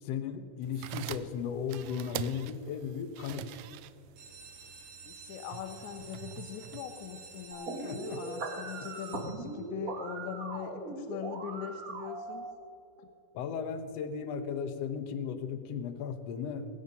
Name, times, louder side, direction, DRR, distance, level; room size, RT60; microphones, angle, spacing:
voice 1, 0.0-3.4 7.8-8.2 13.3-16.7, left 7 dB, 70° left, 10 dB, 1.8 m, -36 dB
sound 1, 0.6-7.5, right 12 dB, 80° right, 1.5 m, -44 dB
sound 2, 4.2-9.8 10.4-10.9 11.3-11.4 11.6-11.7 12.1-12.3, right 4 dB, 60° right, 3.5 m, -51 dB
voice 2, 5.1-12.5 13.0-13.1, left 8 dB, 90° left, 6 dB, 2.2 m, -41 dB
sound 3, 7.5-12.5, right 3 dB, 40° right, 1.3 m, -39 dB
20.0 x 8.6 x 5.3 m, 2.6 s
omnidirectional pair, 3.3 m